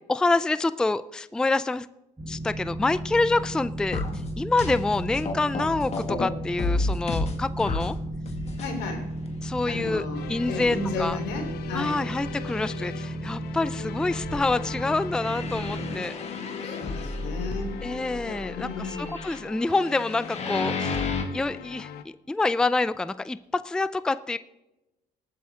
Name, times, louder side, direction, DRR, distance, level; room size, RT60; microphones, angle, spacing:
voice 1, 0.1-1.9 2.3-4.0 4.4-8.0 9.4-11.2 11.7-16.1 17.8-18.7 19.0-21.1 21.3-21.9 22.3-24.4, left 3 dB, 5° left, 15 dB, 0.4 m, -26 dB
Boat Water vehicle, 2.2-16.0, right 1 dB, 15° right, 4.0 m, -34 dB
sound 1, 3.9-6.3 6.6-7.9 8.3-8.7 9.3-9.4 10.0-10.1 10.6-10.7 15.1-21.2, left 3 dB, 40° left, 2.0 m, -31 dB
voice 2, 8.6-9.1 9.7-12.0 16.6-17.8 18.3-19.2, left 3 dB, 85° left, 2 dB, 3.7 m, -34 dB
sound 2, 10.1-22.0, left 9 dB, 70° left, 1.0 m, -42 dB
19.0 x 8.7 x 3.7 m, 0.97 s
cardioid pair, 110°, 17 cm